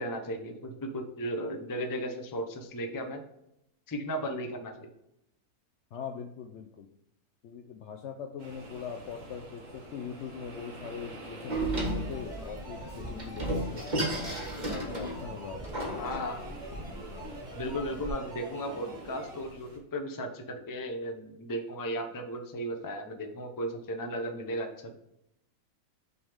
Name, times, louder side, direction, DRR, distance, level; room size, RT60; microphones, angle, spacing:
voice 1, 0.0-3.2 3.9-4.9 16.0-16.4 17.5-24.7, equal, 25° left, 3 dB, 0.4 m, -35 dB
voice 2, 5.9-6.9 7.4-13.9 14.7-16.0 16.9-17.4, left 6 dB, 65° left, 4 dB, 0.7 m, -41 dB
sound 1, 8.4-19.8, right 1 dB, 55° right, 1.8 m, -48 dB
Door, 11.5-18.1, right 1 dB, 30° right, 1.4 m, -34 dB
sound 2, 11.8-19.5, right 2 dB, 5° right, 1.0 m, -46 dB
6.1 x 3.6 x 4.9 m, 0.82 s
omnidirectional pair, 1.6 m